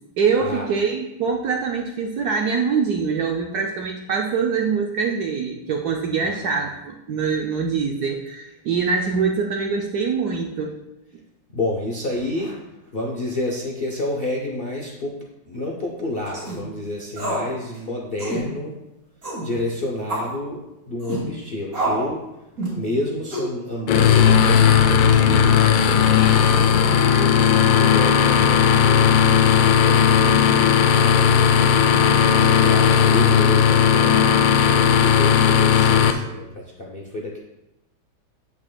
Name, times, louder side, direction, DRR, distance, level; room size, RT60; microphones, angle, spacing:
voice 1, 0.2-10.7, right 5 dB, 70° right, 1 dB, 0.9 m, -24 dB
voice 2, 6.2-6.6 11.5-12.6 12.9-15.2 15.5-18.8 19.4-22.2 22.7-31.7 32.6-37.4, left 1 dB, 55° left, -2 dB, 0.6 m, -30 dB
sound 1, 16.3-16.6 17.2-17.5 17.7-17.8 18.2-18.4 19.2-19.5 20.1-20.3 21.0-21.2 21.7-22.1 22.6-22.8 23.3-23.5 24.1-24.5, right 1 dB, 45° right, 2.8 m, -27 dB
sound 2, 23.9-36.1, left 8 dB, 75° left, 1.3 m, -16 dB
8.6 x 8.5 x 2.2 m, 0.91 s
omnidirectional pair, 2.2 m